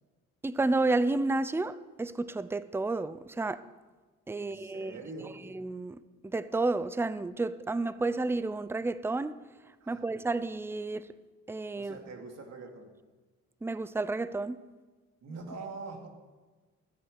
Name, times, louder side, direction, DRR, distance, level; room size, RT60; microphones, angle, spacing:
voice 1, 0.4-3.6 4.3-4.9 5.5-9.4 9.9-11.1 11.5-12.0 13.6-14.6, right 2 dB, 10° right, 0.5 m, -31 dB
voice 2, 4.4-5.4 9.8-10.1 11.8-12.9 15.2-16.1, right 3 dB, 60° right, 2.5 m, -44 dB
13.0 x 9.3 x 6.4 m
cardioid pair, 90°, 30 cm